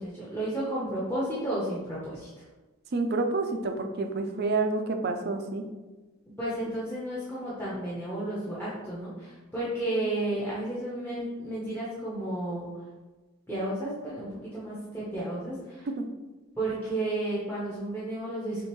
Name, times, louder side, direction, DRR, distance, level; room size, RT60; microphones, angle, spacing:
voice 1, 0.0-2.3 6.4-12.7 13.5-14.3 14.5-15.9 16.6-18.7, right 1 dB, 10° left, -9 dB, 0.8 m, -32 dB
voice 2, 2.9-5.6 15.9-16.0, right 3 dB, 50° right, 5 dB, 0.4 m, -28 dB
6.3 x 2.6 x 3.0 m, 1.2 s
head